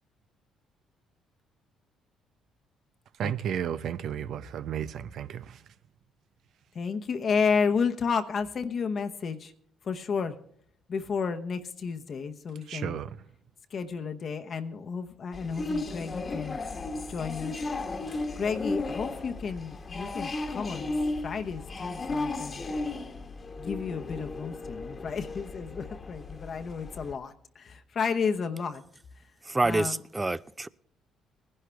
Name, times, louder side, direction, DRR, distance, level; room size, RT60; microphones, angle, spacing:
voice 1, 3.2-5.4 12.7-13.1, right 9 dB, 65° right, 0.6 m, -33 dB
voice 2, 6.7-9.5 9.8-10.4 10.9-13.0 13.7-16.6 17.1-17.5 18.4-20.9 21.2-22.7 23.6-28.8 29.6-30.0, left 5 dB, 50° left, 0.9 m, -32 dB
sound 1, 15.3-27.1, left 2 dB, 30° left, 1.3 m, -35 dB
voice 3, 29.4-30.7, right 2 dB, 15° right, 0.5 m, -27 dB
19.5 x 11.0 x 3.4 m
cardioid pair, 90°, 0 cm